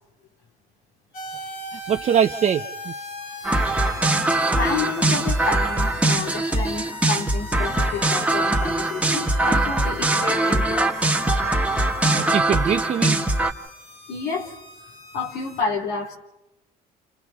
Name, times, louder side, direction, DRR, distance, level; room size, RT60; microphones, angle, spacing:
sound 1, 1.1-15.6, left 2 dB, 60° left, 4.1 m, -39 dB
voice 1, 1.9-2.9 12.1-13.2, right 8 dB, 45° right, 6 dB, 0.6 m, -22 dB
sound 2, 3.4-13.5, right 2 dB, 5° right, 1.5 m, -22 dB
voice 2, 4.5-11.0 14.1-14.6 15.1-16.1, left 5 dB, 90° left, 1 dB, 3.3 m, -30 dB
29.0 x 29.0 x 3.6 m, 0.95 s
cardioid pair, 110°, 17 cm